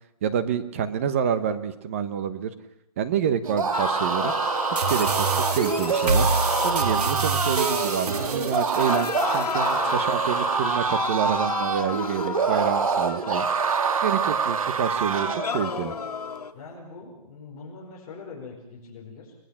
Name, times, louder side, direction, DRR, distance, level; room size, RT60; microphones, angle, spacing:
voice 1, 0.2-2.5 3.0-4.3 4.9-6.3 6.6-13.5 14.0-15.9, right 8 dB, 20° right, 12 dB, 1.0 m, -27 dB
sound 1, 3.4-15.5, right 6 dB, 60° right, 1.8 m, -26 dB
sound 2, 3.7-8.4 8.7-14.6 15.1-16.5, left 6 dB, 85° left, 2.2 m, -32 dB
sound 3, 4.8-9.8, right 4 dB, 80° right, 4.0 m, -27 dB
voice 2, 9.5-9.9 16.5-19.3, left 4 dB, 15° left, -2 dB, 4.8 m, -43 dB
30.0 x 19.5 x 7.4 m, 0.85 s
hypercardioid pair, 175°, 20 cm